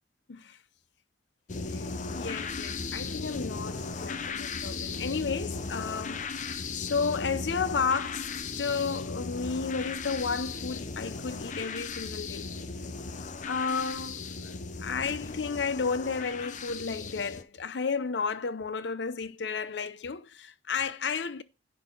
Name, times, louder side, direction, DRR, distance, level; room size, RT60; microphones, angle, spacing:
sound 1, 1.5-17.4, left 4 dB, 45° left, 0.6 m, -37 dB
voice 1, 2.1-12.5 13.4-14.4 14.8-21.4, left 5 dB, 90° left, 0.6 m, -32 dB
10.5 x 4.0 x 5.3 m
head